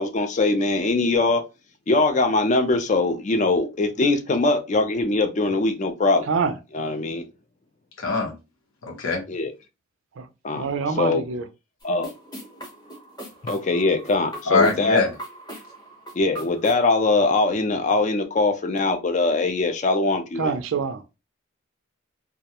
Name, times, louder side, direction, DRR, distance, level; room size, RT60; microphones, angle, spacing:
voice 1, 0.0-1.4 1.9-6.3 6.7-7.3 9.3-9.5 10.4-10.6 11.0-11.2 11.8-12.1 13.4-15.0 16.1-20.5, left 3 dB, 35° left, 0.4 m, -22 dB
voice 2, 6.2-6.6 10.2-10.3 10.5-11.5 20.4-21.0, right 5 dB, 65° right, 0.4 m, -25 dB
voice 3, 8.0-8.3 8.8-9.2 14.5-15.1, left 3 dB, 75° left, 0.8 m, -22 dB
sound 1, 11.8-16.8, right 1 dB, 20° left, 0.9 m, -40 dB
2.3 x 2.1 x 2.8 m
head